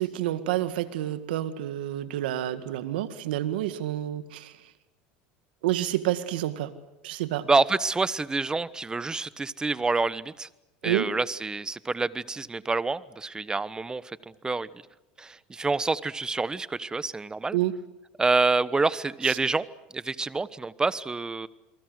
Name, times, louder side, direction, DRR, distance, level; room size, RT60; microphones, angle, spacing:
voice 1, 0.0-4.5 5.6-6.7 7.0-7.4 10.8-11.1 17.5-17.7 19.2-19.4, right 14 dB, 85° right, 11 dB, 2.0 m, -29 dB
voice 2, 7.5-10.5 10.8-14.0 14.4-14.7 15.2-17.6 18.2-19.7 19.9-21.5, right 3 dB, 15° right, 17 dB, 1.1 m, -27 dB
28.0 x 23.5 x 8.0 m, 0.95 s
supercardioid pair, 100°, 5 cm